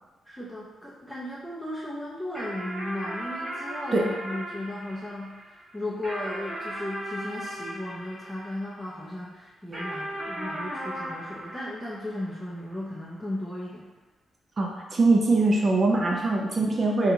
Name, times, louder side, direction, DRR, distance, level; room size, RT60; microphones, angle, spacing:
voice 1, 0.2-13.9 16.1-16.3, left 1 dB, 5° left, -7 dB, 0.5 m, -36 dB
sound 1, 2.3-9.0 9.7-12.5, right 1 dB, 20° right, 1.5 m, -37 dB
voice 2, 14.6-17.1, right 2 dB, 40° right, -1 dB, 0.4 m, -22 dB
2.8 x 2.3 x 3.8 m, 1.2 s
cardioid pair, 85°, 0 cm